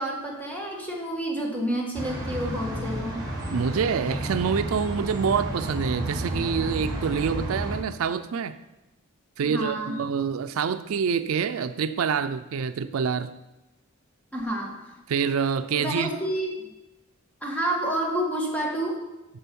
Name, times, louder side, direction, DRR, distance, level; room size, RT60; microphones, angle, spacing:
voice 1, 0.0-3.2 9.4-9.9 14.3-15.0 15.7-16.6 17.4-19.0, right 1 dB, 5° left, -1 dB, 1.6 m, -29 dB
sound 1, 1.9-7.8, right 1 dB, 20° right, 2.3 m, -31 dB
voice 2, 3.5-8.6 9.4-13.3 15.1-16.1, right 6 dB, 75° right, 11 dB, 0.4 m, -26 dB
8.7 x 6.8 x 5.4 m, 1.0 s
head